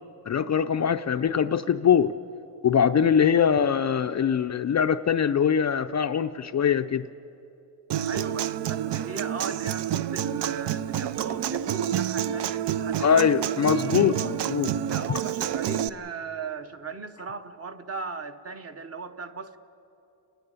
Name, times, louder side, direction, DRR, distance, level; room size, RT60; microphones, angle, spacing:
voice 1, 0.3-2.1 2.6-7.1 13.0-14.7, left 7 dB, 40° left, 9 dB, 0.4 m, -22 dB
Human voice / Acoustic guitar, 7.9-15.9, right 10 dB, 65° right, 0.6 m, -28 dB
voice 2, 8.1-13.5 13.8-14.3 14.9-19.6, right 4 dB, 35° right, 8 dB, 0.9 m, -37 dB
30.0 x 10.5 x 8.9 m, 2.9 s
cardioid pair, 115°, 45 cm